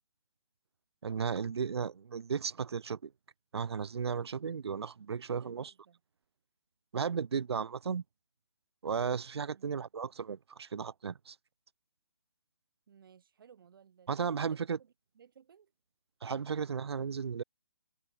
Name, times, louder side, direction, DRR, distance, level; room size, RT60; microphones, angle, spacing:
voice 1, 1.0-3.1 3.5-5.7 6.9-8.0 8.8-11.4 14.1-14.8 16.2-17.4, right 6 dB, 75° right, 0.7 m, -35 dB
voice 2, 5.4-6.0 9.4-9.8 12.9-15.7, right 7 dB, 55° right, 1.8 m, -59 dB
hypercardioid pair, 155°, 14 cm